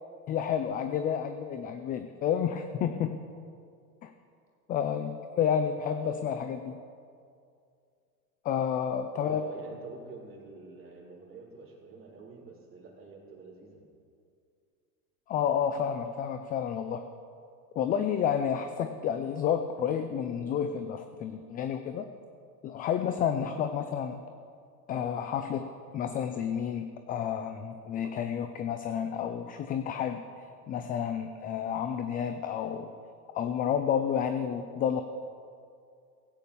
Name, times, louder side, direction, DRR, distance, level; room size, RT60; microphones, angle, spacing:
voice 1, 0.3-3.2 4.0-4.1 4.7-6.8 8.4-9.4 15.3-17.0 17.8-22.0 22.6-24.2 24.9-30.2 30.7-32.9 33.3-35.0, left 8 dB, 20° left, 8 dB, 0.4 m, -30 dB
voice 2, 9.1-13.8, right 4 dB, 25° right, -2 dB, 3.7 m, -47 dB
16.0 x 9.0 x 6.9 m, 2.4 s
hypercardioid pair, 120°, 48 cm